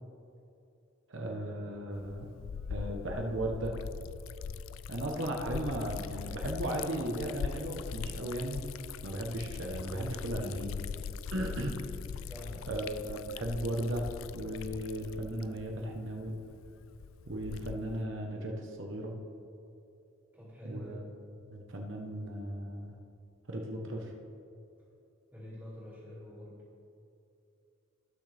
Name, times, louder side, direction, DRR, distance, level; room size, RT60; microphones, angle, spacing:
voice 1, 1.1-2.3 2.7-3.8 4.9-8.6 9.0-10.8 11.3-11.8 12.7-16.4 17.3-19.1 20.6-21.0 21.4-22.9 23.5-24.1, right 1 dB, 70° right, 1 dB, 1.2 m, -36 dB
Liquid, 1.9-18.0, left 6 dB, 85° left, 0.3 m, -41 dB
voice 2, 12.1-13.0 20.3-21.1 25.3-26.6, equal, 10° right, -13 dB, 2.5 m, -46 dB
18.0 x 6.4 x 3.5 m, 2.7 s
head